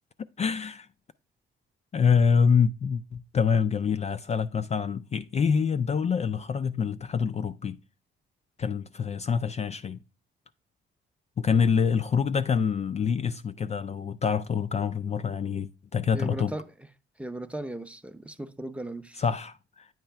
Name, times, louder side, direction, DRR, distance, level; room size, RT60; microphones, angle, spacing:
voice 1, 0.4-0.9 1.9-7.8 8.6-10.0 11.4-16.5 19.2-19.9, left 6 dB, 35° left, 0.4 m, -26 dB
voice 2, 16.1-16.7 17.2-19.2, right 1 dB, 5° right, 0.6 m, -37 dB
9.0 x 3.1 x 5.7 m
cardioid pair, 90°, 20 cm